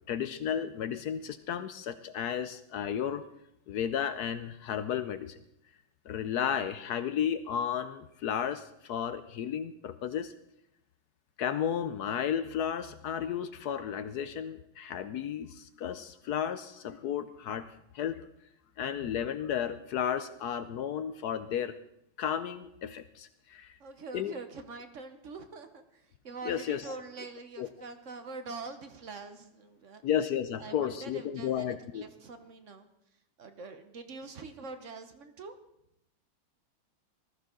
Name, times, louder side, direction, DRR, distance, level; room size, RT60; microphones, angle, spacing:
voice 1, 0.1-3.2 3.7-5.4 6.1-10.3 11.4-17.7 17.9-18.2 18.8-21.7 22.2-23.8 24.1-24.3 26.4-26.8 27.6-27.7 30.0-32.0, left 9 dB, 70° left, 12 dB, 0.9 m, -33 dB
voice 2, 23.8-30.0 30.5-32.9 33.4-35.5, right 4 dB, 50° right, 9 dB, 1.0 m, -44 dB
19.5 x 14.0 x 3.8 m, 0.80 s
omnidirectional pair, 2.3 m